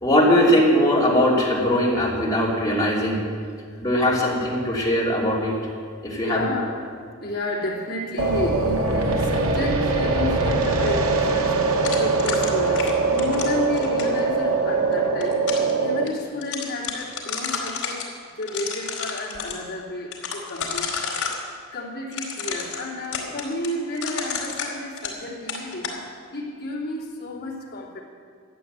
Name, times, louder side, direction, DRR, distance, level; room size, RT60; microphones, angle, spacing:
voice 1, 0.0-3.2 3.8-5.6 6.0-6.4, equal, 15° left, -5 dB, 3.1 m, -20 dB
voice 2, 6.2-6.8 7.2-18.0 18.4-21.3 21.7-26.0 26.3-28.0, left 1 dB, 50° left, -5 dB, 3.0 m, -31 dB
sound 1, 8.2-16.0, right 3 dB, 85° right, 1.3 m, -22 dB
sound 2, 11.8-14.2 15.0-15.7 16.1-16.2 16.4-18.1 18.4-19.6 20.1-21.4 22.1-25.2 25.5-26.0, left 6 dB, 70° left, 4.2 m, -30 dB
13.5 x 9.8 x 8.2 m, 2.1 s
head